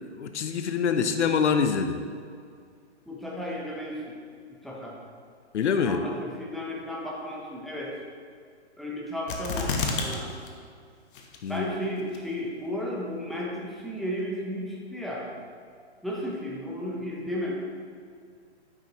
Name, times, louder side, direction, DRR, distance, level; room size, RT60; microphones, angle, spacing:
voice 1, 0.0-2.0 5.5-6.0 11.4-11.7, left 6 dB, 75° left, 8 dB, 0.7 m, -25 dB
voice 2, 3.1-4.2 4.6-5.0 5.8-7.9 8.8-10.3 11.5-15.3 16.0-17.5, equal, ahead, -5 dB, 0.7 m, -34 dB
sound 1, 9.3-10.2 10.5-10.6 11.1-11.6 12.1-12.2, left 4 dB, 50° left, 1.0 m, -29 dB
9.4 x 5.0 x 2.9 m, 2.2 s
hypercardioid pair, 130°, 35 cm